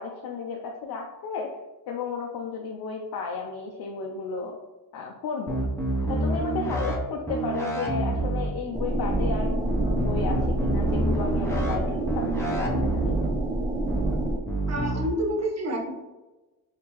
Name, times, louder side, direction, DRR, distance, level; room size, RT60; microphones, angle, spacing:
voice 1, 0.0-1.5 1.9-4.5 4.9-5.6 6.1-13.2, left 5 dB, 65° left, 1 dB, 0.5 m, -33 dB
sound 1, 5.5-7.0 7.3-8.5 9.1-9.3 9.7-11.8 12.1-13.3 13.9-14.1 14.5-15.0, right 2 dB, 5° left, 0.7 m, -27 dB
sound 2, 8.7-14.4, right 1 dB, 10° right, 0.3 m, -28 dB
voice 2, 14.7-16.0, right 1 dB, 40° right, 1 dB, 0.8 m, -28 dB
3.5 x 2.8 x 2.9 m, 1.1 s
cardioid pair, 85°, 39 cm